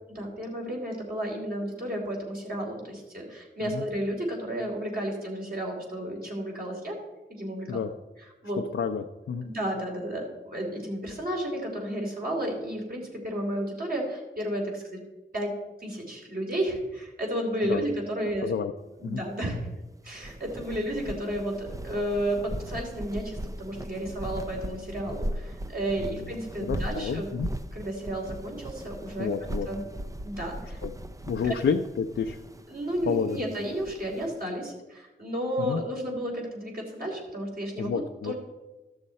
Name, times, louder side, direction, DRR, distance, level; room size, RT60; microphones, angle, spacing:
voice 1, 0.1-6.9 7.3-7.8 8.4-8.6 9.4-15.0 15.3-15.5 15.8-18.5 19.0-19.6 20.0-27.3 27.7-29.3 29.7-29.8 30.2-30.8 31.4-31.6 32.7-38.3, equal, 50° right, -2 dB, 3.4 m, -32 dB
voice 2, 8.7-9.5 17.7-17.8 18.4-18.7 19.0-19.2 26.2-26.3 26.6-27.5 29.2-29.7 30.8-30.9 31.3-32.4 33.1-33.4 35.6-35.8 37.8-38.3, left 6 dB, 75° left, 4 dB, 0.5 m, -29 dB
sound 1, 20.1-34.3, right 1 dB, 15° right, 0.5 m, -38 dB
13.5 x 6.5 x 4.2 m, 1.1 s
cardioid pair, 55°, 20 cm